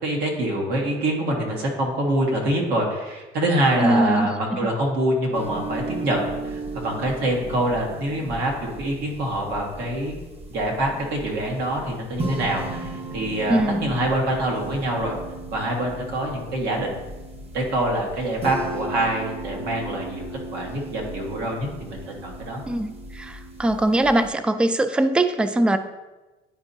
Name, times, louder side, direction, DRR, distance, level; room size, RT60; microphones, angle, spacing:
voice 1, 0.0-10.1 10.5-15.1 15.5-17.0 17.5-20.2 20.5-22.6, right 1 dB, 80° right, -1 dB, 1.6 m, -25 dB
voice 2, 3.8-4.3 13.5-13.9 22.7-25.8, right 1 dB, 5° right, 9 dB, 0.3 m, -21 dB
sound 1, 5.3-24.3, right 2 dB, 35° right, 1.0 m, -36 dB
9.8 x 4.3 x 2.7 m, 1.1 s
cardioid pair, 110°, 17 cm